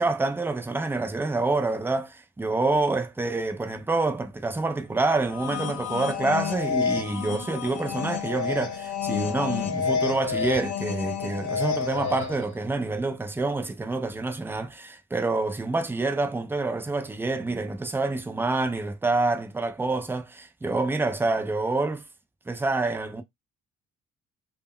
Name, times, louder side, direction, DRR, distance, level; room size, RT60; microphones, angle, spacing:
voice 1, 0.0-22.0 22.5-23.2, right 3 dB, 5° right, 0.4 m, -27 dB
sound 1, 5.2-12.5, left 7 dB, 80° left, 0.7 m, -30 dB
2.1 x 2.1 x 3.5 m
cardioid pair, 90°, 30 cm